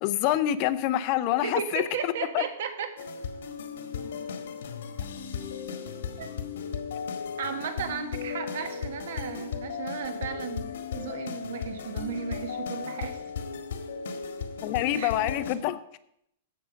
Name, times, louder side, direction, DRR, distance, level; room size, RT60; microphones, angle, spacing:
voice 1, 0.0-2.4 14.6-15.8, left 13 dB, 35° left, 12 dB, 0.6 m, -26 dB
voice 2, 1.4-3.1 6.2-6.3 7.4-13.2 14.9-15.1, right 7 dB, 70° right, 8 dB, 1.6 m, -35 dB
sound 1, 3.0-15.6, left 6 dB, 75° left, 1.7 m, -36 dB
15.5 x 6.3 x 5.2 m, 0.75 s
supercardioid pair, 160°, 0 cm